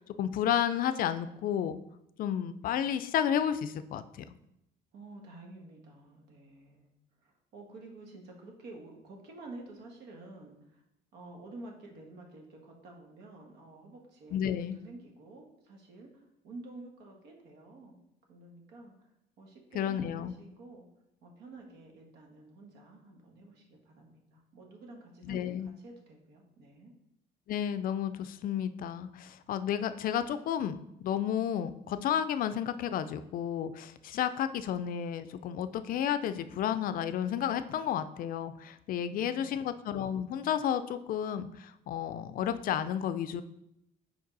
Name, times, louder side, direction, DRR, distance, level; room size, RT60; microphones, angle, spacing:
voice 1, 0.0-1.8 2.2-4.0 14.3-14.8 19.7-20.3 25.3-25.7 27.5-43.4, left 9 dB, 55° left, 11 dB, 0.4 m, -32 dB
voice 2, 4.9-6.9 7.2-10.8 11.1-18.0 18.3-19.1 19.4-20.8 21.2-26.9 39.0-39.6, right 2 dB, 80° right, 1 dB, 1.4 m, -50 dB
5.2 x 4.7 x 4.0 m, 0.83 s
cardioid pair, 110°, 17 cm